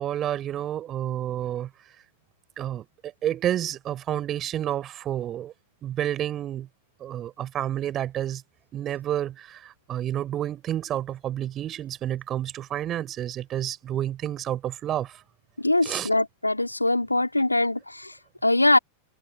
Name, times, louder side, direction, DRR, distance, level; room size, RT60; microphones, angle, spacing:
voice 1, 0.0-1.7 2.6-5.5 5.8-6.7 7.0-8.4 8.7-15.2 15.8-16.1, right 11 dB, 30° right, 5.6 m, -30 dB
voice 2, 15.6-18.8, left 2 dB, 85° left, 4.2 m, -23 dB
open air
figure-of-eight pair, 90°, 0 cm